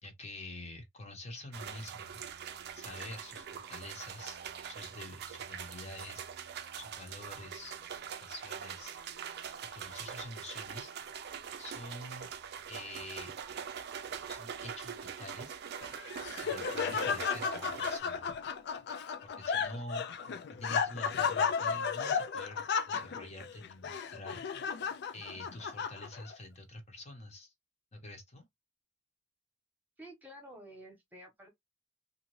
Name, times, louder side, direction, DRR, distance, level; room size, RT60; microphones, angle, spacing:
voice 1, 0.0-2.2 2.7-4.4 4.7-6.3 6.8-9.0 9.7-10.9 11.6-12.3 12.7-13.3 14.3-15.6 16.4-18.3 19.2-24.6 25.1-27.5 27.9-28.4, left 1 dB, 35° left, 0.9 m, -47 dB
sound 1, 1.5-18.0, right 7 dB, 60° right, 0.4 m, -43 dB
Laughter, 15.8-26.3, left 6 dB, 60° left, 0.4 m, -34 dB
voice 2, 30.0-31.5, right 1 dB, 10° right, 1.0 m, -51 dB
2.6 x 2.4 x 3.0 m
head